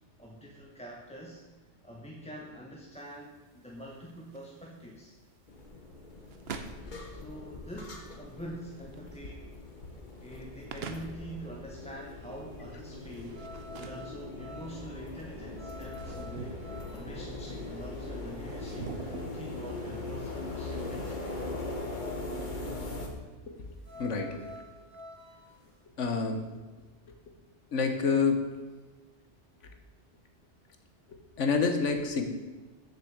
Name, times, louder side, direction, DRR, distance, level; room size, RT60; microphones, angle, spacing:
voice 1, 0.2-1.4 1.8-5.1 7.1-9.5 10.2-18.9 19.3-21.2, equal, 5° left, -2 dB, 0.9 m, -45 dB
sound 1, 2.9-22.1, right 5 dB, 60° right, 1.0 m, -48 dB
sound 2, 5.5-23.1, left 2 dB, 45° left, 1.4 m, -40 dB
sound 3, 7.3-25.8, left 1 dB, 35° right, 2.9 m, -52 dB
voice 2, 24.0-24.6 26.0-26.4 27.1-27.2 27.7-28.4 31.4-32.2, left 5 dB, 85° left, 6 dB, 1.4 m, -28 dB
7.3 x 6.5 x 7.2 m, 1.3 s
omnidirectional pair, 1.2 m